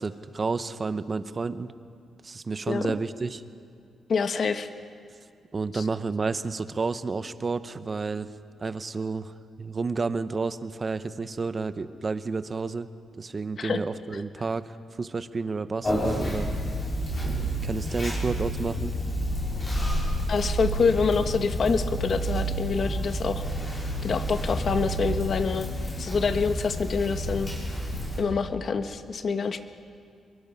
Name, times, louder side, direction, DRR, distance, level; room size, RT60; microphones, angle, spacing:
voice 1, 0.0-1.7 2.2-3.4 5.5-8.3 8.6-12.9 13.2-16.5 17.6-18.9, right 4 dB, 30° right, 12 dB, 0.8 m, -30 dB
voice 2, 4.1-4.7 5.7-5.8 13.6-13.8 14.1-14.2 20.3-23.4 24.0-25.7 26.0-27.5 28.2-29.6, left 5 dB, 50° left, 9 dB, 1.2 m, -26 dB
Conversation, 15.8-28.2, right 1 dB, 30° left, 6.7 m, -29 dB
25.5 x 22.5 x 5.6 m, 2.3 s
cardioid pair, 115°, 0 cm